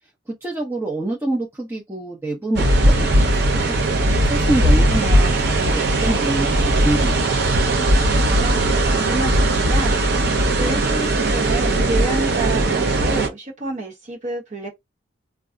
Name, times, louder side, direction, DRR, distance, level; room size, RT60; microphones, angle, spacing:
voice 1, 0.4-2.8 3.5-3.8 4.2-7.2, right 1 dB, 10° right, 0.6 m, -25 dB
sound 1, 2.6-13.3, right 1 dB, 55° right, 0.6 m, -18 dB
voice 2, 8.2-10.0 10.5-14.7, right 2 dB, 35° right, 1.0 m, -29 dB
2.3 x 2.0 x 3.6 m
head